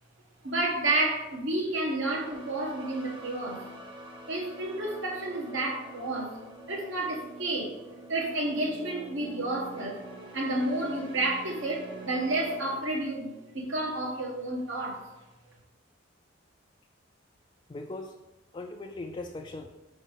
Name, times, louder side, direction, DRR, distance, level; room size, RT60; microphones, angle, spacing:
voice 1, 0.4-3.6 4.3-6.4 6.7-7.8 8.1-10.0 10.3-13.3 13.5-15.0, right 2 dB, 70° right, 0 dB, 1.3 m, -30 dB
sound 1, 2.1-12.8, right 1 dB, 25° right, 0.9 m, -46 dB
voice 2, 17.7-18.2 18.5-19.7, left 2 dB, 25° left, 2 dB, 0.3 m, -39 dB
5.1 x 4.2 x 5.4 m, 1.1 s
head